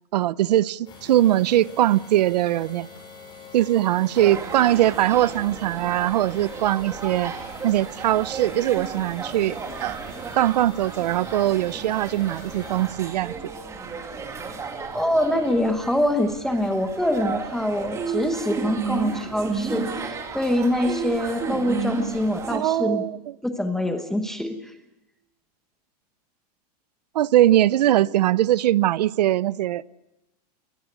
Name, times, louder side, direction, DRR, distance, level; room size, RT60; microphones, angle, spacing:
voice 1, 0.1-2.9 3.5-7.3 7.6-10.0 10.4-13.3 22.5-23.2 27.1-29.8, right 13 dB, 85° right, 0.7 m, -21 dB
sound 1, 0.9-12.9, left 3 dB, 20° left, 7.1 m, -45 dB
sound 2, 4.1-22.6, right 5 dB, 15° right, 2.5 m, -33 dB
voice 2, 14.9-23.1 23.4-24.6, left 1 dB, ahead, 1.1 m, -24 dB
22.5 x 21.0 x 8.3 m
supercardioid pair, 165°, 20 cm